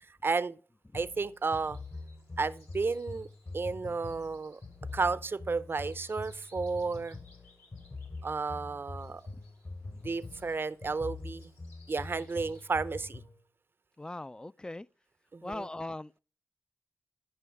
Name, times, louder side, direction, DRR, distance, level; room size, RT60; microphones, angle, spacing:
voice 1, 0.1-0.6 0.9-1.8 2.4-3.3 3.5-4.6 4.9-7.2 8.2-9.2 10.0-11.5 11.9-13.2 15.3-15.7, right 4 dB, 50° right, 0.6 m, -32 dB
sound 1, 0.9-13.4, left 3 dB, 60° left, 3.1 m, -44 dB
sound 2, 1.0-12.6, left 2 dB, 80° left, 3.1 m, -65 dB
voice 2, 14.0-14.9 15.4-16.1, left 2 dB, 15° left, 0.3 m, -39 dB
12.5 x 5.6 x 3.4 m
cardioid pair, 45°, 5 cm